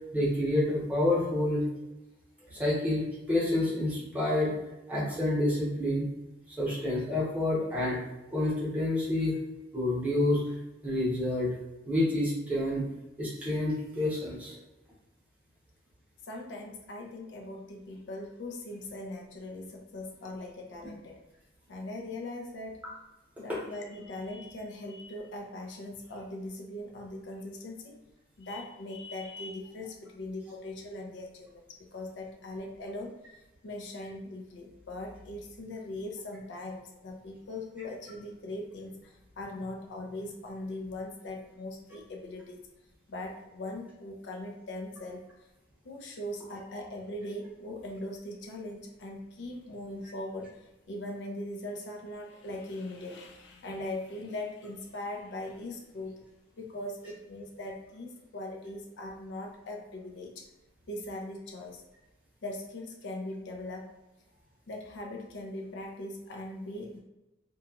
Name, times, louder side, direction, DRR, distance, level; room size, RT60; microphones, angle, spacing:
voice 1, 0.1-1.7 2.5-4.5 4.9-6.1 6.5-8.0 8.3-9.4 9.7-10.4 10.8-11.5 11.9-12.9 13.2-14.6 23.5-23.6, left 1 dB, 10° right, -7 dB, 0.8 m, -28 dB
voice 2, 16.2-21.2 21.7-22.8 23.4-28.0 28.4-33.1 33.6-42.7 43.1-45.3 45.8-56.2 56.6-60.5 60.9-61.8 62.4-63.9 64.7-67.0, left 1 dB, 70° left, 1 dB, 0.4 m, -40 dB
2.8 x 2.3 x 2.3 m, 0.99 s
head